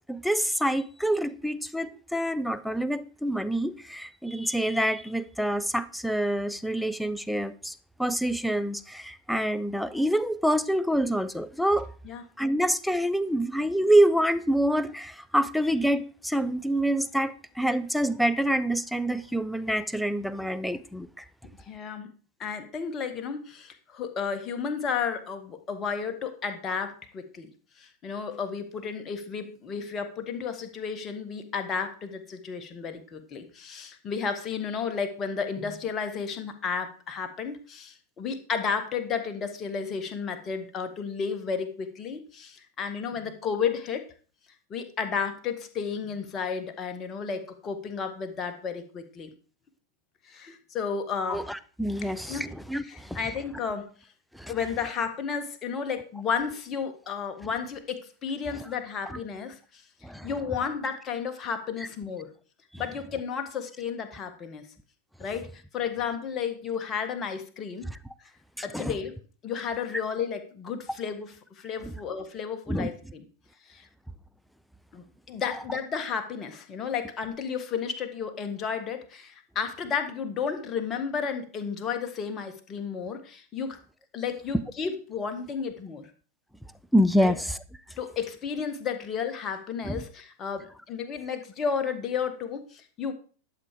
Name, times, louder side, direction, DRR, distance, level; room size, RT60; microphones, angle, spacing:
voice 1, 0.1-7.7 8.0-11.9 12.4-21.1 51.3-52.8 53.1-53.2 54.4-54.5 60.0-60.3 68.7-68.9 72.7-72.9 86.9-87.4 89.9-90.0, right 1 dB, ahead, 0.6 m, -26 dB
voice 2, 21.7-22.1 22.4-27.5 27.8-44.1 44.7-49.3 50.2-51.4 52.0-52.5 52.8-53.9 54.5-59.8 60.2-62.3 62.8-64.7 65.2-67.9 68.6-69.2 69.4-73.2 73.7-73.9 74.9-83.8 84.1-86.1 87.2-87.3 88.0-93.1, left 6 dB, 25° left, 1.7 m, -32 dB
11.5 x 7.4 x 4.9 m
figure-of-eight pair, 90°, 0 cm